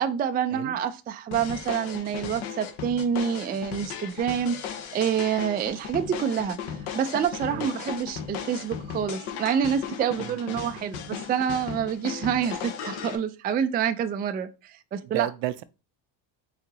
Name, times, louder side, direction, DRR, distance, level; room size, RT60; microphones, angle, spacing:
voice 1, 0.0-15.3, right 8 dB, 20° right, 0.3 m, -27 dB
sound 1, 1.3-13.2, left 7 dB, 70° left, 0.9 m, -36 dB
voice 2, 10.2-11.0 15.0-15.6, right 13 dB, 65° right, 0.6 m, -34 dB
4.6 x 2.8 x 3.9 m
supercardioid pair, 90°, 49 cm